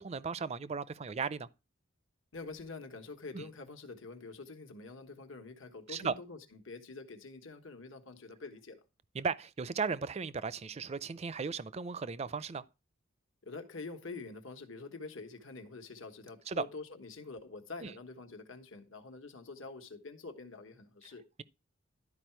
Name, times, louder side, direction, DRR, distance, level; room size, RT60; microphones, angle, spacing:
voice 1, 0.0-1.5 3.3-3.5 5.9-6.2 9.1-12.6 16.5-16.6 17.8-17.9, right 5 dB, 30° right, 0.4 m, -36 dB
voice 2, 2.3-8.8 13.5-21.2, left 3 dB, 80° left, 1.3 m, -46 dB
12.0 x 4.8 x 4.5 m
head